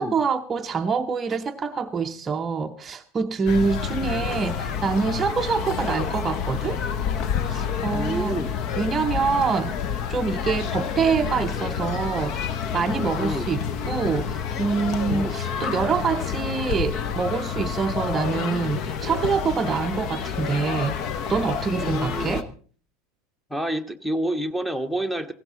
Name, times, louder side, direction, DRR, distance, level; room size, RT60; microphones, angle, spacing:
voice 1, 0.0-6.8 7.5-8.4 8.8-9.8 10.1-22.5, right 5 dB, 20° right, 0.7 m, -25 dB
sound 1, 3.4-22.4, left 7 dB, 40° left, 1.1 m, -29 dB
voice 2, 7.9-8.6 13.2-13.5 15.1-15.4 21.8-22.5 23.5-25.3, right 1 dB, 5° left, 1.2 m, -28 dB
18.0 x 16.0 x 3.9 m
figure-of-eight pair, 80°, 0 cm